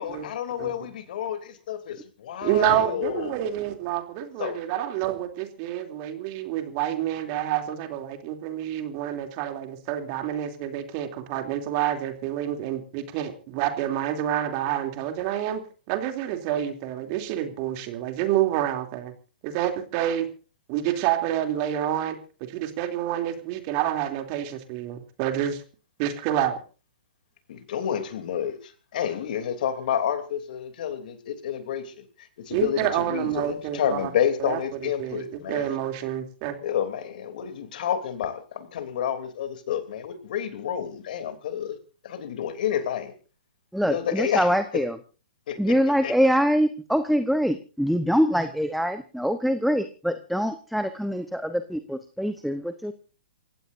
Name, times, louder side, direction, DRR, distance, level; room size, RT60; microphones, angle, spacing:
voice 1, 0.0-3.4 4.4-4.6 27.5-35.7 36.6-41.8 42.0-43.1 43.8-44.8 45.5-45.8 46.0-46.1, left 9 dB, 55° left, 8 dB, 3.1 m, -30 dB
voice 2, 2.4-19.1 19.4-20.3 20.7-25.6 26.0-26.6 32.5-34.1 34.4-36.6, right 11 dB, 40° right, 6 dB, 3.0 m, -28 dB
voice 3, 43.7-45.0 45.6-52.9, equal, ahead, 10 dB, 1.0 m, -24 dB
29.0 x 16.0 x 2.7 m, 0.36 s
hypercardioid pair, 125°, 5 cm